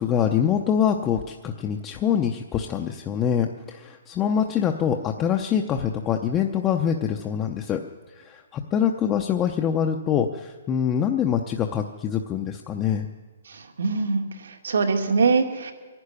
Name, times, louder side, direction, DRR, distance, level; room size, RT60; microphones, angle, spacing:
voice 1, 0.0-7.8 8.2-13.1, left 8 dB, 15° left, 3 dB, 0.6 m, -24 dB
voice 2, 13.5-15.7, right 4 dB, 80° right, 5 dB, 2.5 m, -23 dB
24.0 x 11.5 x 9.7 m, 1.4 s
hypercardioid pair, 175°, 0 cm